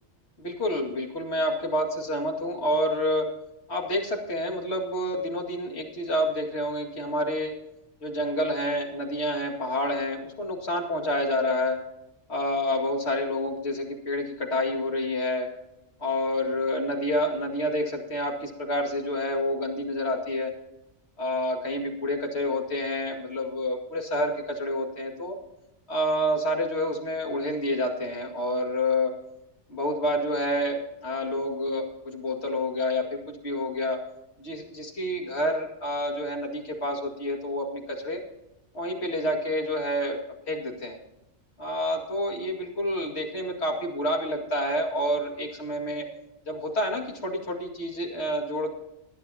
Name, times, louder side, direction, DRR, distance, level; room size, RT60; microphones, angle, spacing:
voice 1, 0.4-3.3 3.7-7.6 8.0-11.8 12.3-15.5 16.0-20.5 21.2-25.4 25.9-29.1 29.7-34.0 34.4-38.2 38.7-41.0 41.6-46.1 46.5-48.7, left 1 dB, 65° left, 1 dB, 2.5 m, -28 dB
19.0 x 11.0 x 2.8 m, 0.90 s
omnidirectional pair, 1.2 m